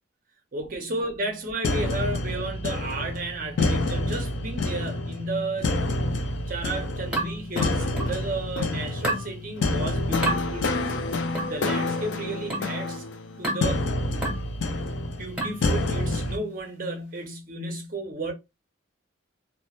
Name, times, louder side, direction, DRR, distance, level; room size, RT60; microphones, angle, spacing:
voice 1, 0.5-5.8 6.5-11.0 11.4-13.0 13.4-13.9 14.9-18.3, right 2 dB, 40° right, 0.5 m, -33 dB
sound 1, 1.6-16.4, left 2 dB, 65° left, 0.4 m, -28 dB
sound 2, 7.1-8.2 9.0-9.3 10.2-10.4 11.3-11.6 12.5-12.8 13.4-13.7 14.2-14.5 15.4-15.7, right 2 dB, 5° right, 1.0 m, -29 dB
2.1 x 2.0 x 2.8 m
head